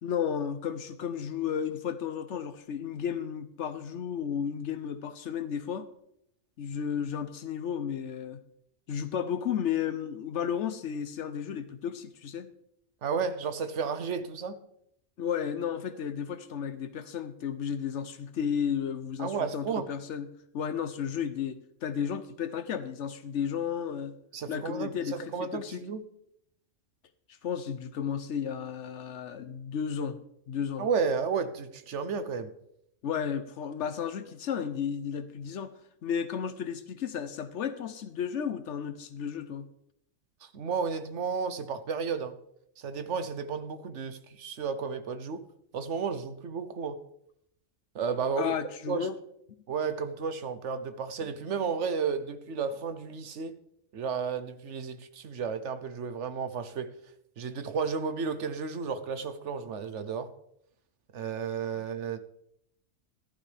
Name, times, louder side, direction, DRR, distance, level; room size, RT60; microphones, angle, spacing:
voice 1, 0.0-5.9 6.6-8.4 8.9-12.5 15.2-20.3 20.5-24.2 24.5-25.8 27.4-30.2 30.5-30.9 33.0-35.7 36.0-39.7 48.4-49.2 61.7-61.8, left 8 dB, 75° left, 12 dB, 1.0 m, -33 dB
voice 2, 13.0-14.6 19.2-19.9 24.3-26.0 30.8-32.5 40.4-42.3 42.8-45.4 45.7-47.0 47.9-48.5 48.9-49.1 49.7-53.5 53.9-56.9 57.4-60.3 61.1-62.2, right 5 dB, 75° right, 11 dB, 1.2 m, -32 dB
14.0 x 12.0 x 3.4 m, 0.75 s
omnidirectional pair, 1.2 m